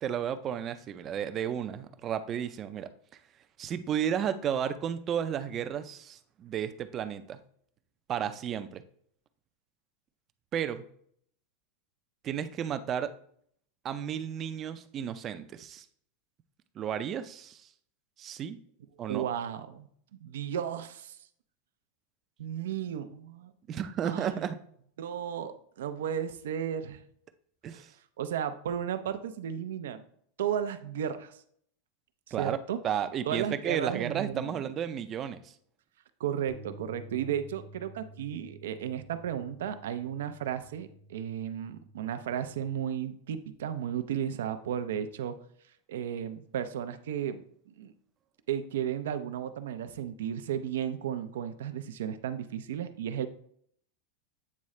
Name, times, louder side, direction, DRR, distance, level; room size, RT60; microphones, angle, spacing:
voice 1, 0.0-2.9 3.6-7.4 8.1-8.8 10.5-10.9 12.2-13.1 13.8-15.9 16.8-17.7 18.2-18.6 19.0-19.3 23.7-24.6 27.6-27.9 32.3-32.6 32.8-35.5, right 9 dB, 25° right, 11 dB, 0.4 m, -33 dB
voice 2, 19.0-19.9 20.2-21.2 22.4-23.5 24.0-24.5 25.0-27.0 27.7-27.8 28.2-30.0 30.4-31.4 32.3-32.8 33.3-34.6 36.2-45.4 45.9-47.9 48.5-53.3, right 9 dB, 85° right, 10 dB, 0.6 m, -34 dB
Bass guitar, 36.5-42.7, equal, 75° left, 0.8 m, -52 dB
8.5 x 3.7 x 3.2 m, 0.64 s
supercardioid pair, 155°, 0 cm